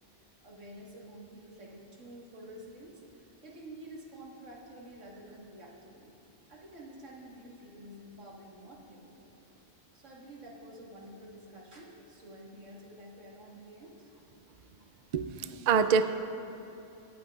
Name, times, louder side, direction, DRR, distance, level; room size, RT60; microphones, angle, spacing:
voice 1, 0.4-6.2 6.5-9.6 9.9-14.2, right 1 dB, 90° right, -3 dB, 1.9 m, -49 dB
voice 2, 15.1-16.0, right 6 dB, 75° right, 10 dB, 0.4 m, -25 dB
23.5 x 8.5 x 2.4 m, 2.7 s
omnidirectional pair, 1.2 m